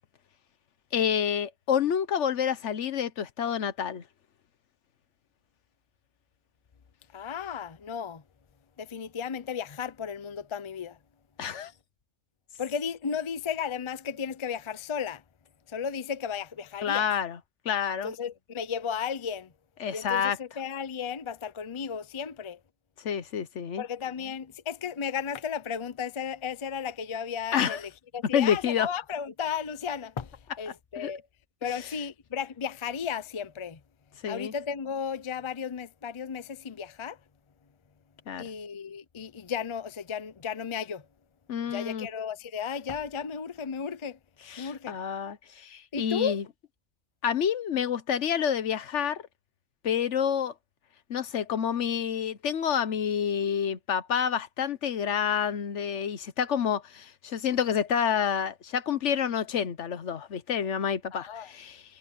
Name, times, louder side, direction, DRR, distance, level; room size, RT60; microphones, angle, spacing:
voice 1, 0.9-4.0 11.4-11.7 16.8-17.4 17.6-18.1 19.8-20.4 23.0-23.8 27.5-27.8 28.3-28.9 31.0-31.1 34.2-34.5 38.3-38.5 41.5-42.1 44.5-46.4 47.2-49.2 49.8-50.5 51.1-61.8, left 8 dB, 70° left, 1.2 m, -28 dB
voice 2, 7.1-8.2 8.8-11.0 12.6-15.2 15.7-17.1 18.0-19.5 19.9-22.6 23.8-31.2 31.6-33.8 34.3-37.2 38.4-41.1 41.7-44.2 44.6-44.9 45.9-46.4 61.1-61.5, left 7 dB, 30° left, 0.6 m, -34 dB
omnidirectional pair, 1.3 m